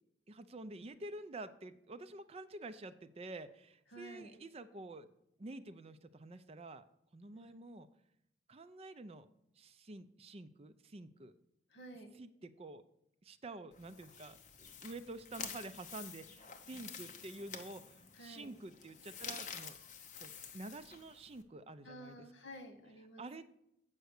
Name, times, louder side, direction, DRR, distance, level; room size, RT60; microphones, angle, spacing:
voice 1, 0.3-5.1 5.4-6.8 7.1-7.9 8.5-9.3 9.6-11.3 12.2-12.8 13.2-19.8 20.2-22.3 23.2-23.5, right 2 dB, 35° right, 11 dB, 0.5 m, -49 dB
voice 2, 3.9-4.4 7.3-7.5 11.7-12.1 18.2-18.5 21.8-23.2, right 1 dB, 80° left, 7 dB, 1.3 m, -52 dB
sound 1, 13.7-21.4, left 6 dB, 40° left, 0.8 m, -49 dB
8.0 x 5.5 x 6.5 m, 0.77 s
head